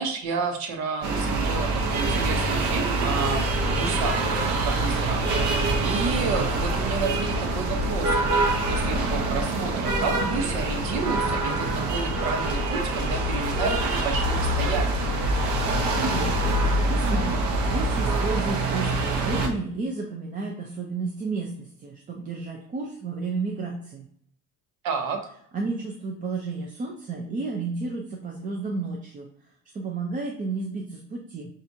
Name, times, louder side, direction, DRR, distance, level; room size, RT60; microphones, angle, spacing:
voice 1, 0.0-15.1 24.8-25.2, right 4 dB, 90° right, 5 dB, 0.9 m, -31 dB
sound 1, 1.0-19.5, right 2 dB, 55° right, 0.8 m, -25 dB
voice 2, 16.0-24.1 25.5-29.3 29.7-31.5, right 3 dB, 25° right, 0 dB, 0.4 m, -32 dB
5.8 x 2.5 x 2.7 m, 0.67 s
cardioid pair, 160°, 36 cm